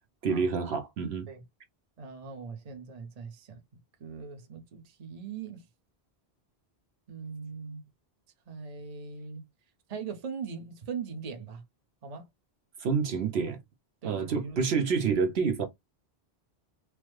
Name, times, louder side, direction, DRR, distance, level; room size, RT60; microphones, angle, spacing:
voice 1, 0.2-1.3 12.8-13.6 14.0-15.6, right 5 dB, 75° right, 1.0 m, -28 dB
voice 2, 2.0-3.6 4.0-5.7 7.1-7.8 8.5-9.4 9.9-11.6 12.0-12.3 14.0-14.6, right 5 dB, 40° right, 0.7 m, -40 dB
3.2 x 2.0 x 3.1 m
omnidirectional pair, 1.1 m